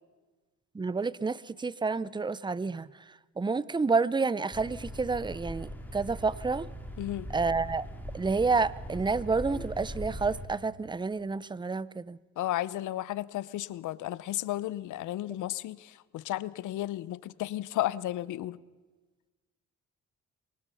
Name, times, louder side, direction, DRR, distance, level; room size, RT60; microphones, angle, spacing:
voice 1, 0.7-2.9 3.4-6.7 7.3-7.9 8.1-12.2, right 4 dB, 15° right, 20 dB, 0.6 m, -29 dB
sound 1, 4.5-10.4, equal, 5° left, 3.4 m, -41 dB
voice 2, 7.0-7.3 12.4-18.6, left 14 dB, 80° left, 19 dB, 0.8 m, -33 dB
23.5 x 19.0 x 5.8 m, 1.3 s
cardioid pair, 90°, 30 cm